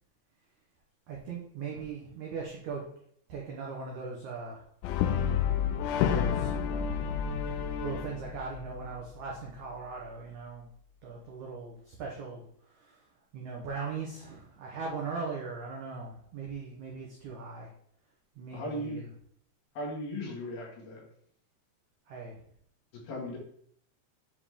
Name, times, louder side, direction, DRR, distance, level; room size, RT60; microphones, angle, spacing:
voice 1, 1.1-2.8 3.3-4.6 6.0-6.8 7.8-10.7 11.0-12.4 12.8-13.0 13.3-17.7 18.4-19.0 22.1-22.4, right 4 dB, 75° right, -2 dB, 1.7 m, -39 dB
Brass instrument, 4.8-9.1, left 8 dB, 85° left, 2.6 m, -30 dB
voice 2, 18.5-19.0 19.8-21.0 23.0-23.4, equal, 60° left, -4 dB, 3.8 m, -37 dB
8.4 x 5.1 x 3.6 m, 0.64 s
omnidirectional pair, 5.0 m